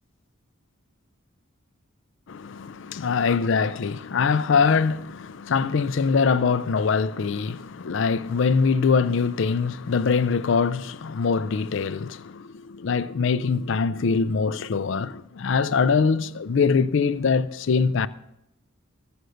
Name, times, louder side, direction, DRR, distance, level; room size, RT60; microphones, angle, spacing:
voice 1, 2.3-18.1, left 5 dB, 60° left, 0.4 m, -23 dB
14.5 x 8.0 x 6.4 m
head